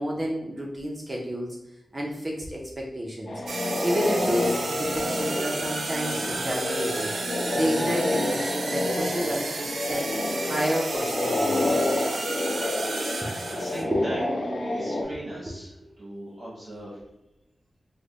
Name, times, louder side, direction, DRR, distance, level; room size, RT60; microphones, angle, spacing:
voice 1, 0.0-1.6 1.9-3.4 3.8-7.1 7.5-10.1 10.4-11.9 13.9-14.0 14.8-15.0, equal, 20° right, -2 dB, 0.5 m, -30 dB
sound 1, 3.3-15.0, left 2 dB, 70° left, 0.6 m, -28 dB
sound 2, 3.5-13.8, right 3 dB, 90° right, 0.4 m, -33 dB
voice 2, 13.2-17.0, right 1 dB, 45° right, -6 dB, 0.8 m, -38 dB
3.2 x 2.0 x 3.8 m, 0.96 s
wide cardioid pair, 145°, 0 cm